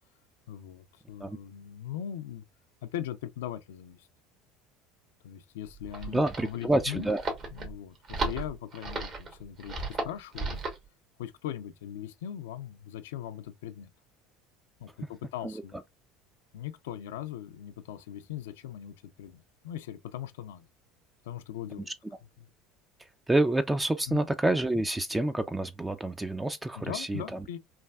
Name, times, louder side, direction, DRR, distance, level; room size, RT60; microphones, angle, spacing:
voice 1, 0.5-2.4 2.8-4.1 5.2-7.1 7.5-10.6 11.2-13.9 14.8-15.8 16.5-20.7 21.2-21.9 22.4-22.5 24.1-24.2 26.8-27.6, left 11 dB, 80° left, 0.3 m, -40 dB
sound 1, 5.7-10.8, right 3 dB, 45° right, 1.1 m, -35 dB
voice 2, 6.1-7.2 15.4-15.5 23.3-27.4, right 2 dB, 10° right, 0.3 m, -28 dB
3.2 x 2.5 x 2.3 m
hypercardioid pair, 80°, 0 cm